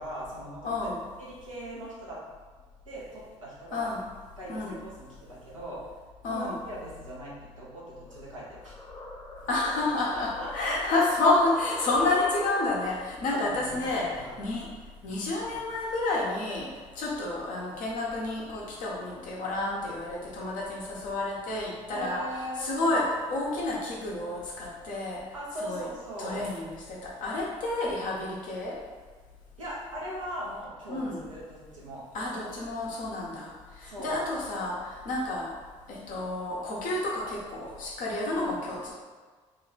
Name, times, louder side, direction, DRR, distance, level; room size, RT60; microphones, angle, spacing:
voice 1, 0.0-0.8 1.2-2.2 2.9-3.9 4.4-5.8 6.2-8.8 10.1-11.0 12.0-12.1 12.8-12.9 13.3-14.3 21.9-22.7 25.3-26.5 29.6-32.0 33.8-34.2, equal, 90° right, -7 dB, 0.7 m, -40 dB
voice 2, 0.6-1.0 3.7-4.0 4.5-4.8 6.2-6.6 9.5-14.7 15.0-16.7 16.9-22.2 22.6-25.2 25.6-25.9 26.2-28.8 30.9-31.2 32.1-33.5 33.8-35.5 35.9-38.9, left 2 dB, 55° left, -4 dB, 1.0 m, -30 dB
sound 1, 8.1-13.1, left 1 dB, 20° left, 0.7 m, -43 dB
3.0 x 2.3 x 3.8 m, 1.4 s
figure-of-eight pair, 45°, 16 cm